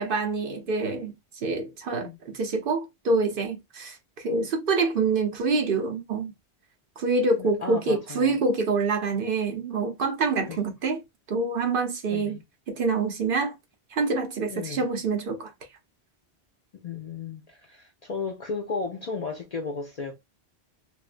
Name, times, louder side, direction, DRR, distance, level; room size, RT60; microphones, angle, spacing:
voice 1, 0.0-6.3 7.0-11.0 11.3-12.4 12.7-13.6 13.9-15.5, right 3 dB, 60° right, 0.8 m, -26 dB
voice 2, 7.4-8.4 10.4-10.6 12.1-12.4 14.5-14.9 16.8-20.2, left 4 dB, 55° left, 0.4 m, -34 dB
3.2 x 2.2 x 2.4 m
omnidirectional pair, 1.1 m